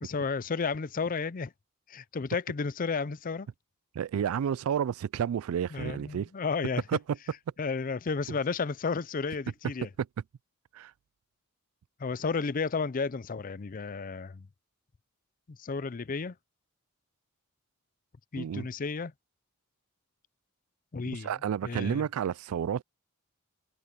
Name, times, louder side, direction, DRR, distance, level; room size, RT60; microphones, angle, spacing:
voice 1, 0.0-1.5 1.9-3.5 5.7-6.8 7.6-9.9 12.0-14.5 15.5-16.4 18.3-19.1 20.9-21.3 21.6-22.0, left 4 dB, 40° left, 0.5 m, -32 dB
voice 2, 3.9-6.3 6.9-7.2 10.7-10.9 18.4-18.7 21.1-22.8, right 8 dB, 85° right, 0.3 m, -31 dB
head